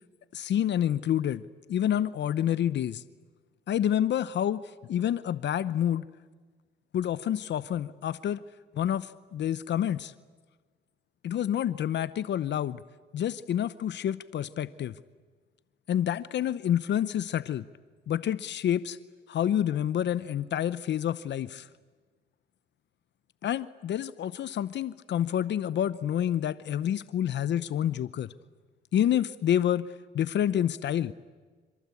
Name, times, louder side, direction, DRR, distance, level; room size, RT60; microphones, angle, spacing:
voice 1, 0.3-1.4 1.7-3.0 3.7-6.1 6.9-8.4 8.7-10.1 11.2-12.8 13.1-15.0 15.9-17.6 18.1-19.0 19.3-21.7 23.4-28.3 28.9-29.9 30.1-31.1, left 10 dB, 65° left, 16 dB, 0.8 m, -28 dB
27.0 x 25.5 x 8.4 m, 1.4 s
cardioid pair, 90°, 20 cm